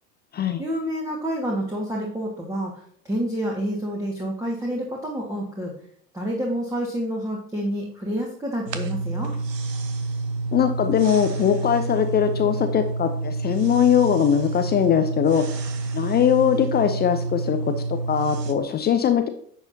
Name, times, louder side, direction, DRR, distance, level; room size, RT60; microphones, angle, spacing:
voice 1, 0.6-5.7 6.1-9.3, equal, 5° right, -2 dB, 1.8 m, -28 dB
sound 1, 8.7-18.5, right 3 dB, 80° right, 1.2 m, -28 dB
voice 2, 10.5-15.4 15.9-17.7 18.1-19.3, left 9 dB, 20° left, 7 dB, 0.6 m, -21 dB
10.5 x 7.2 x 2.8 m, 0.63 s
figure-of-eight pair, 85°, 49 cm